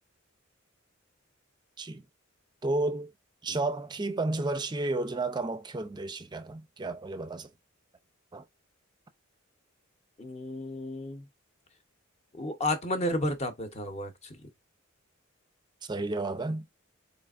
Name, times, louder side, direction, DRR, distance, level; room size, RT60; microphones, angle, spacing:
voice 1, 2.6-3.1 3.4-7.5 8.3-8.4 15.9-16.6, right 2 dB, 20° right, 0.5 m, -32 dB
voice 2, 10.2-11.2 12.3-14.4, left 1 dB, 30° left, 0.8 m, -32 dB
4.2 x 3.2 x 2.4 m
head